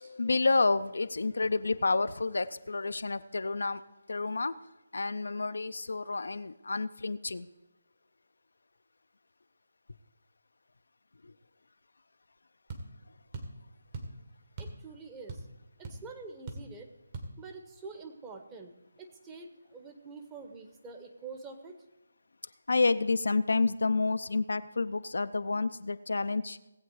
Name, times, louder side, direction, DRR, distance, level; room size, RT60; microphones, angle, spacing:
voice 1, 0.0-3.8 4.1-4.5 4.9-7.5 11.2-11.3 22.7-26.6, left 3 dB, 70° left, 11 dB, 0.5 m, -29 dB
sound 1, 12.7-12.9 13.3-13.6 13.9-14.2 14.6-14.8 15.1-15.6 15.8-16.0 16.5-16.7 17.1-17.3, right 3 dB, 35° right, 1.9 m, -40 dB
voice 2, 14.6-15.4 15.9-16.9 17.4-18.7 19.0-21.8, right 4 dB, 15° right, 4 dB, 1.2 m, -46 dB
17.5 x 8.1 x 4.8 m, 1.0 s
figure-of-eight pair, 150°, 0 cm